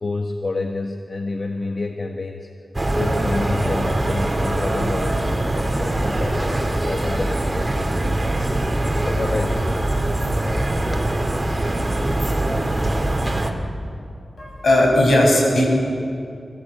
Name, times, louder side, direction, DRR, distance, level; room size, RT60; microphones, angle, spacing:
voice 1, 0.0-2.5 3.0-9.8, left 2 dB, 50° left, 4 dB, 1.3 m, -29 dB
sound 1, 2.7-13.5, right 1 dB, 25° right, 2.5 m, -22 dB
voice 2, 14.4-15.6, left 1 dB, 70° left, -1 dB, 7.2 m, -16 dB
27.0 x 16.0 x 8.6 m, 2.6 s
wide cardioid pair, 70°, 0 cm